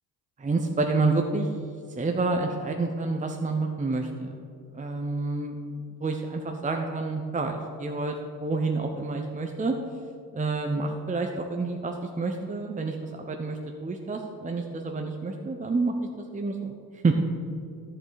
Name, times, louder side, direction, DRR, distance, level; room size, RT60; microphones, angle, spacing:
voice 1, 0.4-1.5 2.0-4.4 4.7-5.6 6.0-9.7 10.3-16.7 17.0-17.2, right 3 dB, 15° right, 3 dB, 0.8 m, -28 dB
11.5 x 7.5 x 4.1 m, 2.4 s
hypercardioid pair, 55°, 49 cm